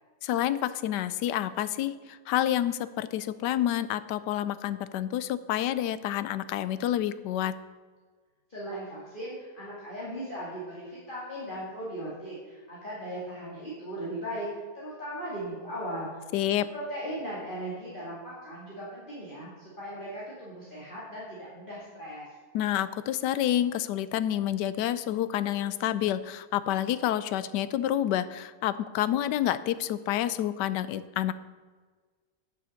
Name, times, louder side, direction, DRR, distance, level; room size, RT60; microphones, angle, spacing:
voice 1, 0.2-7.6 16.3-16.7 22.5-31.3, left 12 dB, 85° left, 15 dB, 1.2 m, -28 dB
voice 2, 8.5-14.5 14.7-16.2 16.7-19.5 19.8-22.2, right 1 dB, 30° left, -7 dB, 2.4 m, -38 dB
9.8 x 6.9 x 6.4 m, 1.4 s
omnidirectional pair, 1.8 m